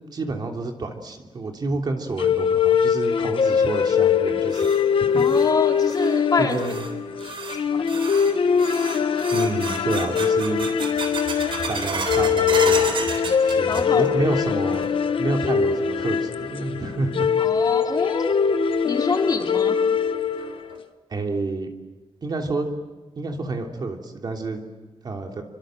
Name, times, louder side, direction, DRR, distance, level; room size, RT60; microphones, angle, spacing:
voice 1, 0.1-4.7 5.0-5.2 6.4-6.9 9.3-10.7 11.7-12.9 13.4-14.9 15.2-17.3 21.1-21.7 22.2-22.7 23.2-24.6 25.0-25.4, right 3 dB, 45° right, 3 dB, 3.1 m, -29 dB
sound 1, 2.2-20.7, left 7 dB, 65° left, 1.1 m, -22 dB
sound 2, 4.1-14.3 14.5-15.1 15.5-15.6 16.4-16.5 18.1-18.2 18.6-18.7 19.2-19.3 19.8-19.9 20.4-20.8, right 4 dB, 60° right, 4.0 m, -33 dB
voice 2, 5.1-6.6 13.7-14.1 17.4-18.3 18.8-19.7, left 4 dB, 40° left, 2 dB, 3.1 m, -25 dB
28.0 x 24.5 x 7.8 m, 1.2 s
wide cardioid pair, 165°, 10 cm